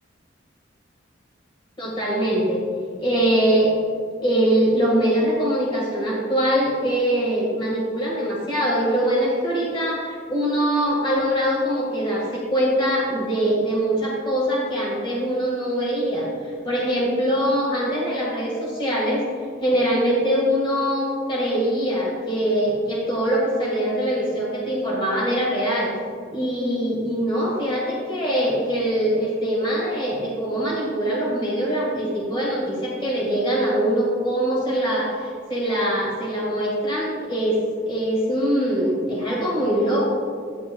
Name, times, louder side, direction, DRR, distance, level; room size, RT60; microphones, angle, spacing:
voice 1, 1.8-2.6 3.0-3.8 4.2-19.3 19.6-25.9 26.3-37.6 37.9-40.1, equal, 25° left, -5 dB, 1.6 m, -23 dB
9.9 x 9.2 x 2.3 m, 2.1 s
head